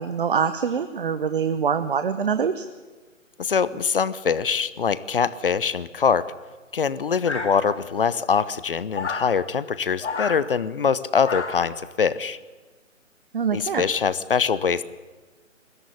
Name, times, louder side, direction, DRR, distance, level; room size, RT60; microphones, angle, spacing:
voice 1, 0.0-2.7 13.3-13.8, right 6 dB, 40° right, 11 dB, 1.1 m, -24 dB
voice 2, 3.4-6.3 6.7-12.4 13.5-14.8, left 6 dB, 45° left, 17 dB, 1.0 m, -23 dB
sound 1, 7.2-8.0 8.9-9.3 10.0-10.4 11.2-11.7, left 4 dB, 60° left, 2.4 m, -30 dB
21.0 x 16.5 x 9.8 m, 1.3 s
figure-of-eight pair, 140°, 39 cm